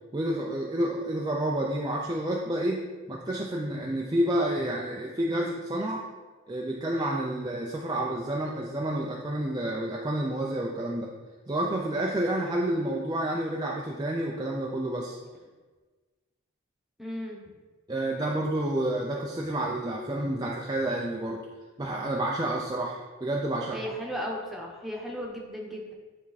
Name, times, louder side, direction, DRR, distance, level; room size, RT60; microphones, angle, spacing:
voice 1, 0.1-6.0 6.5-11.1 11.5-15.2 17.9-21.5 21.8-23.8, right 1 dB, 20° right, -2 dB, 0.5 m, -29 dB
voice 2, 17.0-17.4 23.7-25.9, equal, ahead, -2 dB, 1.1 m, -35 dB
9.6 x 3.5 x 4.1 m, 1.3 s
head